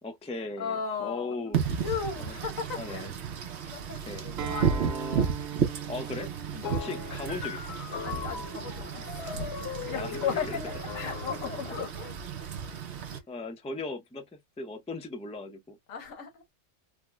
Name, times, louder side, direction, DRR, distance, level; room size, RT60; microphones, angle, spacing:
voice 1, 0.0-1.7 2.2-2.3 2.8-3.1 4.0-4.3 4.6-5.3 5.9-6.3 6.6-7.6 9.9-10.2 10.5-10.6 11.5-11.6 13.3-15.8, left 3 dB, 10° left, 0.4 m, -38 dB
voice 2, 0.6-1.6 1.8-3.1 3.7-5.3 6.5-6.9 8.0-12.5 13.1-13.2 15.9-16.5, left 6 dB, 90° left, 1.5 m, -37 dB
Wind / Rain, 1.5-13.2, right 7 dB, 60° right, 1.0 m, -33 dB
Acoustic guitar, 4.4-9.6, right 9 dB, 80° right, 1.0 m, -41 dB
sound 1, 6.6-11.8, left 7 dB, 60° left, 0.9 m, -39 dB
4.7 x 2.1 x 2.2 m
omnidirectional pair, 1.4 m